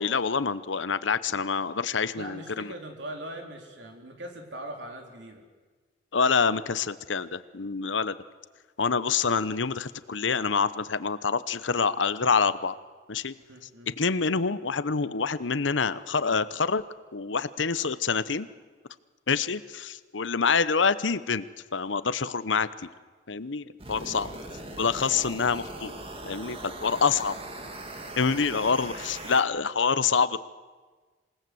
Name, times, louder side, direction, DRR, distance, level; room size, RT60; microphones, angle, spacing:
voice 1, 0.0-2.7 6.1-8.1 8.8-12.7 13.1-13.3 13.9-16.8 17.1-18.5 19.3-21.4 21.7-22.7 23.3-24.3 24.8-25.9 26.3-27.3 28.2-30.4, left 5 dB, 85° left, 15 dB, 0.9 m, -26 dB
voice 2, 2.1-5.4 13.4-14.0 24.0-24.3, right 1 dB, 70° right, 3 dB, 4.0 m, -41 dB
sound 1, 23.8-29.4, right 2 dB, 30° right, 2.3 m, -40 dB
27.0 x 18.0 x 7.9 m, 1.4 s
head